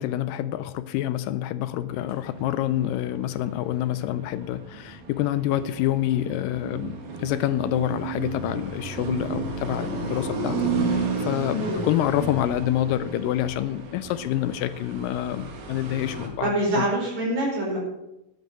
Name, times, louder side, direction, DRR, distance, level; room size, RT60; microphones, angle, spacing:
voice 1, 0.0-16.9, left 12 dB, 80° left, 13 dB, 2.0 m, -27 dB
sound 1, 1.9-16.3, right 4 dB, 75° right, 3.6 m, -33 dB
voice 2, 16.4-17.8, right 1 dB, 50° right, -3 dB, 6.3 m, -25 dB
11.5 x 9.2 x 7.5 m, 0.93 s
omnidirectional pair, 4.3 m